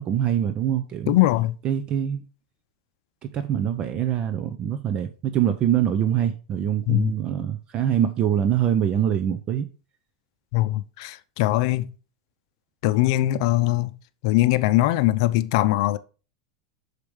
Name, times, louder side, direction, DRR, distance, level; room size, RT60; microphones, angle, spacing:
voice 1, 0.0-1.1 1.6-2.2 3.2-9.7, right 10 dB, 35° right, 0.7 m, -24 dB
voice 2, 1.1-1.6 6.9-7.1 10.5-11.8 12.8-13.9 14.2-16.0, left 16 dB, 60° left, 0.6 m, -21 dB
6.5 x 5.2 x 4.8 m
supercardioid pair, 135°, 3 cm